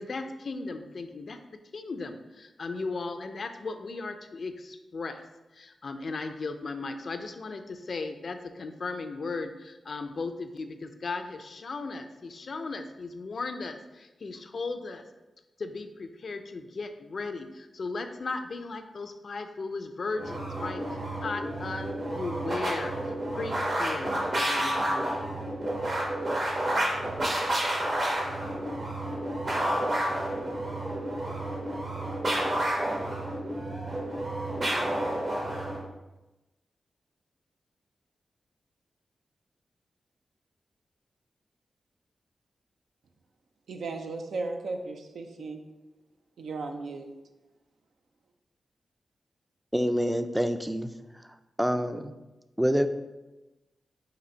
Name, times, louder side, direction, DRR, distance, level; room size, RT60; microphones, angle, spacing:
voice 1, 0.0-1.4 1.7-5.2 5.5-15.0 15.6-25.2, left 3 dB, 60° left, 7 dB, 0.4 m, -36 dB
sound 1, 20.2-35.8, right 1 dB, 55° right, 1.3 m, -30 dB
voice 2, 43.7-45.6 46.4-47.1, right 3 dB, 85° right, 5 dB, 0.4 m, -35 dB
voice 3, 49.7-50.9 51.6-52.1 52.6-52.9, equal, 5° right, 9 dB, 0.3 m, -26 dB
3.9 x 2.7 x 4.3 m, 1.1 s
cardioid pair, 55°, 0 cm